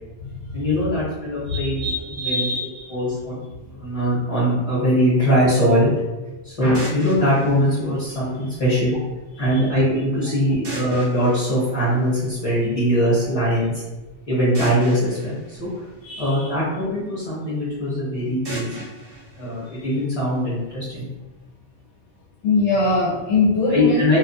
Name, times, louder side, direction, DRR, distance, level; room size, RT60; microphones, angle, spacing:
voice 1, 0.5-1.9 2.2-2.5 2.9-3.4 3.7-5.9 6.4-9.0 9.4-13.8 14.3-15.7 16.2-18.8 19.4-21.1 23.7-24.2, equal, 35° left, -8 dB, 1.0 m, -21 dB
voice 2, 1.5-2.9 9.4-9.6 16.0-16.5 22.4-24.0, left 2 dB, 90° left, -5 dB, 0.9 m, -22 dB
sound 1, 6.7-8.8 10.6-12.6 14.5-16.8 18.4-20.5, right 1 dB, 40° right, 0.4 m, -37 dB
2.4 x 2.2 x 2.6 m, 1.1 s
omnidirectional pair, 1.2 m